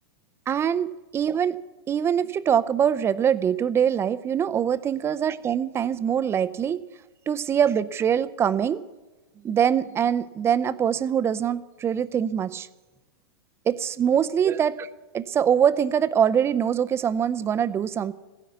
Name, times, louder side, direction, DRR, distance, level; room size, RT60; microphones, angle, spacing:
voice 1, 0.5-1.6 1.9-6.8 7.3-8.8 9.4-12.7 13.7-14.9 15.1-18.1, right 8 dB, 20° right, 14 dB, 0.7 m, -23 dB
15.0 x 10.5 x 8.2 m, 1.1 s
hypercardioid pair, 115°, 13 cm